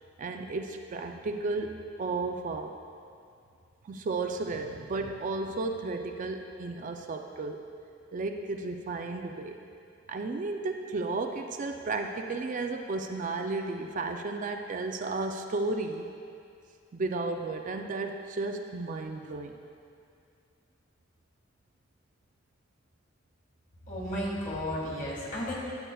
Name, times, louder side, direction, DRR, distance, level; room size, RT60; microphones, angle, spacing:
voice 1, 0.2-2.7 3.8-7.6 8.1-9.6 10.1-16.1 16.9-19.5, right 3 dB, 40° right, 4 dB, 0.4 m, -33 dB
voice 2, 23.9-25.5, equal, 40° left, -5 dB, 1.9 m, -33 dB
13.0 x 7.9 x 2.3 m, 2.4 s
head